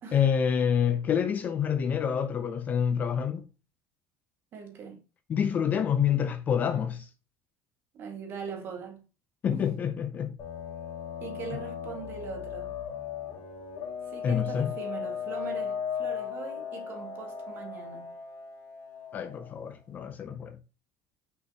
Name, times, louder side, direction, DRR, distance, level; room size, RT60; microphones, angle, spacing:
voice 1, 0.1-3.5 5.3-7.1 9.4-10.4 14.2-14.7 19.1-20.6, left 8 dB, 25° left, 0.5 m, -27 dB
voice 2, 4.5-5.0 7.9-9.1 9.5-9.6 11.2-12.8 14.1-18.1, right 6 dB, 35° right, 1.8 m, -41 dB
sound 1, 10.4-19.6, left 7 dB, 45° left, 3.2 m, -37 dB
6.2 x 5.6 x 2.9 m
cardioid pair, 175°, 7 cm